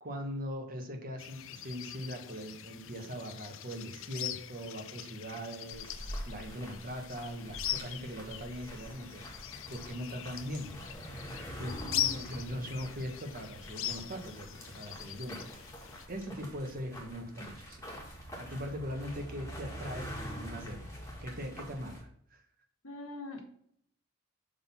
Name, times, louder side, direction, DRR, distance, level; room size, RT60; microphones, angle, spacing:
voice 1, 0.0-9.2 9.7-10.8 11.5-15.7 16.1-17.8 18.4-20.9 21.2-22.4, equal, 45° right, 3 dB, 1.4 m, -41 dB
sound 1, 1.2-16.1, left 11 dB, 65° left, 0.5 m, -41 dB
sound 2, 5.7-22.0, equal, 15° left, 1.9 m, -45 dB
voice 2, 11.8-12.1 22.8-23.4, left 2 dB, 90° left, 4 dB, 1.5 m, -43 dB
6.7 x 3.8 x 5.8 m, 0.66 s
head